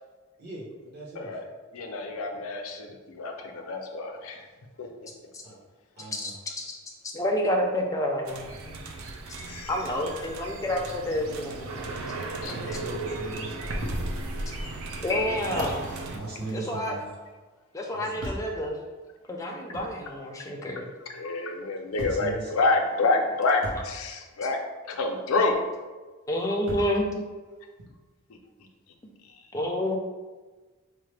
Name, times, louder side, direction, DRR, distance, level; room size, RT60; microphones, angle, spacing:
voice 1, 0.4-1.3 5.4-5.6 6.0-6.4 12.4-13.6 16.1-17.0 17.9-18.1 21.9-22.5, right 2 dB, 45° right, -5 dB, 1.0 m, -39 dB
voice 2, 1.7-4.4 4.8-4.9 9.5-9.7 12.4-12.8 19.7-19.8 21.1-24.6 24.9-25.6, left 3 dB, 70° left, 3 dB, 0.5 m, -28 dB
voice 3, 7.1-8.8 9.7-11.9 15.0-16.0 16.5-17.0 17.7-18.8 19.3-20.9 26.3-27.2 29.5-30.0, left 1 dB, 15° left, 0 dB, 0.4 m, -29 dB
sound 1, 8.2-16.2, right 2 dB, 70° right, 0.4 m, -36 dB
sound 2, 13.8-14.0 14.6-14.7 15.4-17.3 18.2-18.6 19.7-19.9 21.2-21.3 22.0-22.3 23.6-23.9 25.5-25.6 26.7-27.0 27.8-27.9, equal, 90° right, 0.8 m, -36 dB
4.7 x 2.1 x 3.2 m, 1.3 s
head